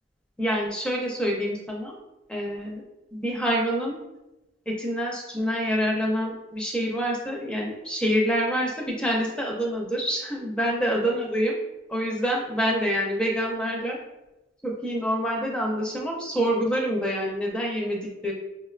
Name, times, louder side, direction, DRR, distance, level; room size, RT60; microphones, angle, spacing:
voice 1, 0.4-1.9 2.3-2.8 3.1-3.9 4.7-11.5 11.9-14.0 14.6-18.3, equal, 5° left, -1 dB, 0.5 m, -26 dB
4.9 x 2.1 x 2.4 m, 0.98 s
head